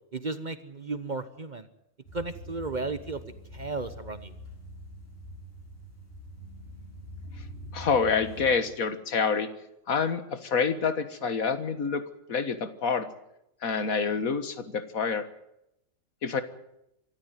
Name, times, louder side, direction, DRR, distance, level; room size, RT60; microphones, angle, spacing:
voice 1, 0.1-1.7 2.1-3.2 3.5-4.3, right 3 dB, 35° right, 11 dB, 1.1 m, -34 dB
sound 1, 2.0-8.5, equal, 45° left, 5.3 m, -44 dB
voice 2, 7.7-9.5 9.9-12.0 12.3-13.1 13.6-15.2 16.2-16.4, left 5 dB, 90° left, 11 dB, 2.0 m, -27 dB
25.5 x 13.0 x 9.2 m, 0.83 s
omnidirectional pair, 1.4 m